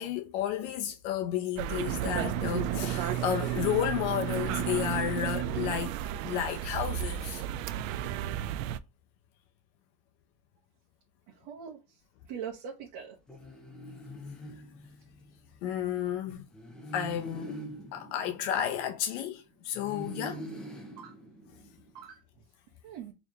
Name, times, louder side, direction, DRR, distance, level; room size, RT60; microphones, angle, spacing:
voice 1, 0.0-6.0 6.2-7.4 15.6-16.4 16.9-17.6 17.9-20.4, left 10 dB, 60° left, 0.8 m, -32 dB
sound 1, 1.6-8.8, right 11 dB, 85° right, 0.5 m, -32 dB
voice 2, 11.3-11.8 12.3-13.2 21.0-21.1 21.9-22.2 22.8-23.1, right 7 dB, 50° right, 1.2 m, -41 dB
sound 2, 13.3-15.4 16.5-19.2 19.7-22.0, equal, ahead, 0.5 m, -44 dB
4.2 x 3.5 x 2.9 m
cardioid pair, 170°, 39 cm